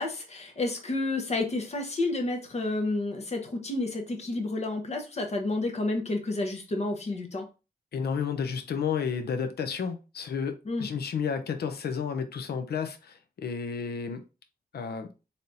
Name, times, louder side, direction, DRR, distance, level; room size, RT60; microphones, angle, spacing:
voice 1, 0.0-7.5 10.7-10.9, left 2 dB, 45° left, 0.9 m, -30 dB
voice 2, 7.9-14.2 14.7-15.1, left 6 dB, 85° left, 0.6 m, -31 dB
4.0 x 3.5 x 2.6 m
wide cardioid pair, 170°, 16 cm